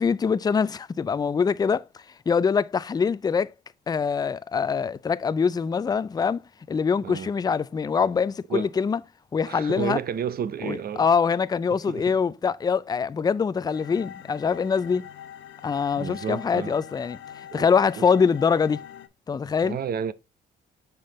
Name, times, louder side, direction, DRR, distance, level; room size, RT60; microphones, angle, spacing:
voice 1, 0.0-1.9 2.3-3.5 3.9-9.0 9.3-10.0 10.6-15.1 15.6-18.8 19.3-19.8, left 6 dB, 20° left, 0.3 m, -24 dB
voice 2, 9.5-11.1 11.7-12.1 16.0-16.8 17.5-17.7 18.0-18.1 19.6-20.1, right 8 dB, 50° right, 0.6 m, -31 dB
sound 1, 13.7-19.1, left 10 dB, 75° left, 0.7 m, -44 dB
5.9 x 5.2 x 3.1 m
cardioid pair, 90°, 20 cm